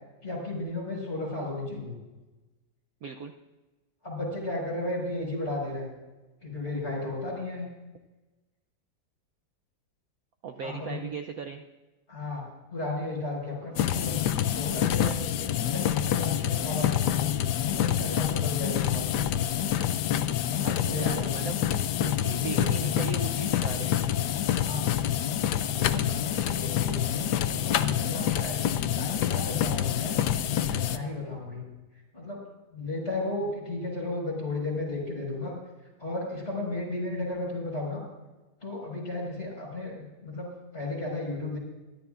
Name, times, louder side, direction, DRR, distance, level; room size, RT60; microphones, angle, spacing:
voice 1, 0.2-2.0 4.0-5.9 6.4-7.7 10.6-11.0 12.1-12.4 12.7-14.1 14.5-15.2 15.6-17.2 17.6-19.5 20.5-21.7 22.3-23.1 24.5-24.9 25.7-30.2 30.6-31.7 32.1-32.4 32.7-35.6 36.0-38.0 38.6-41.6, left 2 dB, 35° left, -3 dB, 5.5 m, -34 dB
voice 2, 3.0-3.3 10.4-11.6 20.6-21.6 22.0-24.0, right 6 dB, 65° right, 4 dB, 1.0 m, -38 dB
sound 1, 13.8-31.0, left 10 dB, 70° left, 1.1 m, -27 dB
23.0 x 12.5 x 2.5 m, 1.1 s
omnidirectional pair, 2.0 m